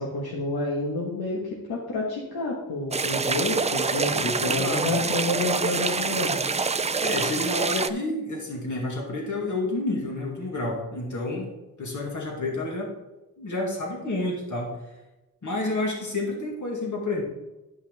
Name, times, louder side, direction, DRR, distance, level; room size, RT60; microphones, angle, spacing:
voice 1, 0.0-1.4 1.7-6.4, left 2 dB, 90° left, -3 dB, 1.5 m, -29 dB
sound 1, 2.9-7.9, right 4 dB, 20° right, 0.3 m, -26 dB
voice 2, 4.1-5.0 7.0-11.5 11.8-12.9 13.4-14.7 15.4-17.2, left 2 dB, 55° left, -1 dB, 2.4 m, -29 dB
11.5 x 5.6 x 3.5 m, 1.0 s
cardioid pair, 80°, 36 cm